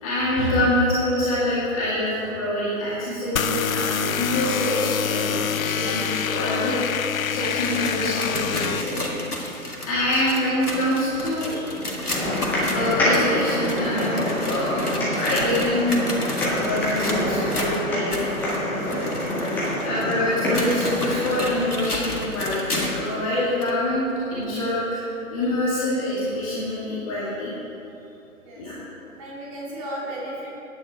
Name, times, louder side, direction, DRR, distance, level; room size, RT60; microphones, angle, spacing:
voice 1, 0.0-6.7 7.3-9.0 9.9-11.7 12.5-14.9 15.2-16.0 16.4-19.0 19.8-25.0 25.3-27.5 28.6-28.7, left 1 dB, 25° left, -9 dB, 2.1 m, -25 dB
sound 1, 3.4-8.8, left 8 dB, 70° left, 0.5 m, -26 dB
sound 2, 7.4-23.1 23.6-23.7 24.4-24.5 25.4-25.5, left 1 dB, 90° left, 2.0 m, -32 dB
sound 3, 12.1-21.7, equal, 5° left, 1.1 m, -26 dB
voice 2, 28.4-28.8 29.2-30.5, right 1 dB, 25° right, -5 dB, 2.2 m, -35 dB
9.7 x 9.4 x 4.9 m, 2.9 s
figure-of-eight pair, 140°, 44 cm